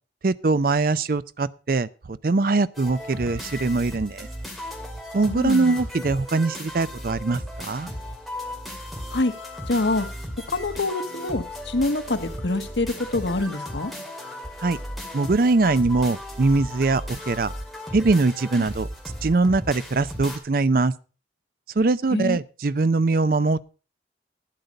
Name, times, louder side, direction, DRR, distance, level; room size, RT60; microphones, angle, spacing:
voice 1, 0.2-4.3 5.1-7.9 14.6-14.8 15.1-17.5 17.9-18.9 19.2-20.9 21.8-23.6, right 3 dB, 50° right, 0.5 m, -22 dB
sound 1, 2.7-20.4, left 1 dB, ahead, 2.3 m, -36 dB
voice 2, 5.3-5.8 9.1-9.3 9.7-10.1 10.5-13.9 22.1-22.4, left 2 dB, 80° left, 1.3 m, -25 dB
11.5 x 9.5 x 5.3 m
head